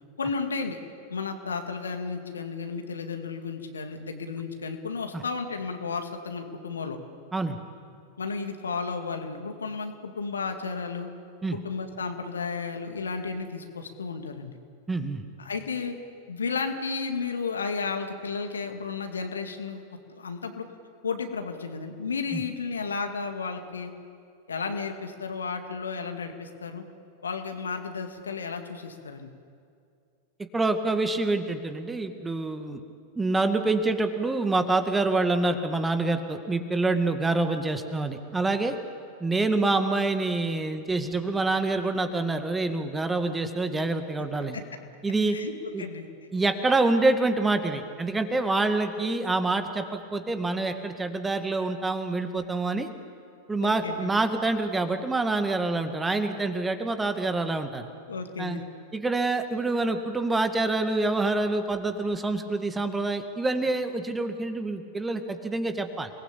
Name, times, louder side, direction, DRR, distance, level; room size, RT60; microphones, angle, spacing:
voice 1, 0.2-0.8 1.1-7.0 8.2-11.1 11.5-14.6 15.4-16.0 16.3-19.8 20.1-20.7 21.0-23.9 24.5-26.8 27.2-29.3 44.5-44.6 45.3-45.5 45.8-46.1 48.5-48.6 53.6-54.1 58.1-58.6, left 5 dB, 70° left, 5 dB, 2.3 m, -33 dB
voice 2, 14.9-15.2 22.3-22.4 30.5-32.8 33.2-38.8 39.2-44.6 45.0-45.4 45.7-45.8 46.3-52.9 53.5-57.9 58.4-58.6 58.9-66.1, right 2 dB, 10° right, 7 dB, 2.0 m, -26 dB
29.0 x 20.0 x 8.4 m, 2.3 s
figure-of-eight pair, 90°, 0 cm